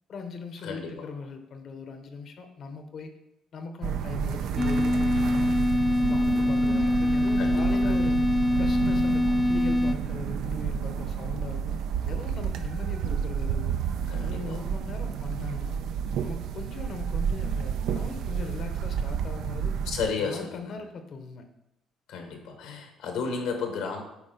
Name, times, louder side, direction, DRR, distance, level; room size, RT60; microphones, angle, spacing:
voice 1, 0.1-3.1 3.5-5.5 5.9-8.2 8.6-11.8 12.1-13.8 14.2-15.8 16.2-19.8 20.2-21.5, left 4 dB, 50° left, 7 dB, 0.9 m, -39 dB
voice 2, 0.6-0.9 7.4-8.0 14.1-14.6 19.9-20.7 22.1-24.0, left 5 dB, 85° left, 4 dB, 1.4 m, -33 dB
sound 1, 3.8-20.1, right 7 dB, 75° right, 0.5 m, -30 dB
sound 2, 4.6-9.9, left 1 dB, 10° left, 0.4 m, -24 dB
8.2 x 4.3 x 3.9 m, 0.86 s
cardioid pair, 115°, 0 cm